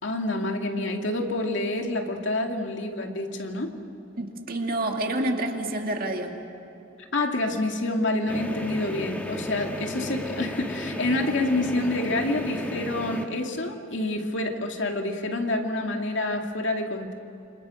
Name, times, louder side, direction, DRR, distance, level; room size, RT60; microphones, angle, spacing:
voice 1, 0.0-3.7 7.0-17.1, left 2 dB, 65° left, 3 dB, 2.5 m, -28 dB
voice 2, 4.2-6.4, right 1 dB, 45° right, 2 dB, 2.4 m, -28 dB
sound 1, 8.3-13.2, equal, 10° left, 2.0 m, -34 dB
28.5 x 26.0 x 6.5 m, 2.9 s
head